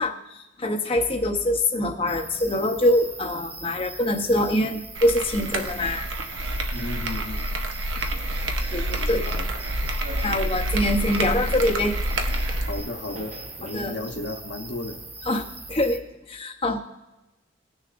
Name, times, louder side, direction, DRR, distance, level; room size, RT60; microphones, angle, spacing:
voice 1, 0.0-6.1 8.7-9.2 10.2-12.0 13.7-13.9 15.3-16.8, left 1 dB, 30° left, 4 dB, 0.8 m, -24 dB
sound 1, 2.1-16.0, right 2 dB, 10° right, 0.4 m, -41 dB
sound 2, 5.0-12.8, right 1 dB, 90° right, 0.9 m, -28 dB
voice 2, 6.7-7.6 8.9-9.5 12.7-15.0, left 2 dB, 65° left, 3 dB, 1.0 m, -34 dB
sound 3, 8.1-15.2, right 1 dB, 35° right, 0.7 m, -44 dB
19.5 x 6.7 x 2.5 m, 1.0 s
head